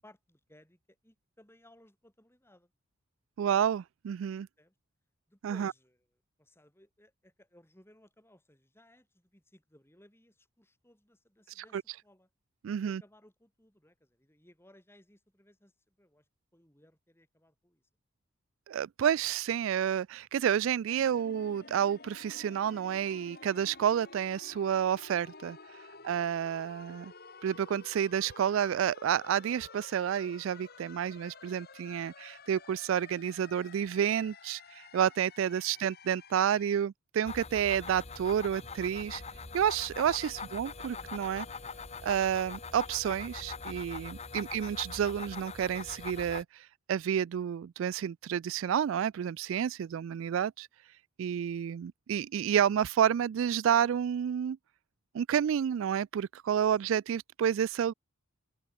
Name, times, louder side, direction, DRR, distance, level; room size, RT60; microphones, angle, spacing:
voice 1, 0.0-2.7 4.6-4.7 5.3-6.1 6.4-12.3 12.8-17.8 21.0-21.3 25.9-26.4 35.6-35.8 40.3-40.5 49.8-50.0 51.5-51.7, left 1 dB, 10° left, 7.3 m, -62 dB
voice 2, 3.4-4.5 5.4-5.7 11.6-11.8 12.6-13.0 18.7-25.6 26.0-27.1 27.4-39.2 39.5-41.5 42.0-50.7 51.2-54.6 55.1-57.9, right 9 dB, 70° right, 0.3 m, -30 dB
sound 1, 20.9-36.9, left 4 dB, 50° left, 3.5 m, -52 dB
sound 2, 37.2-46.4, left 4 dB, 30° left, 1.3 m, -43 dB
open air
head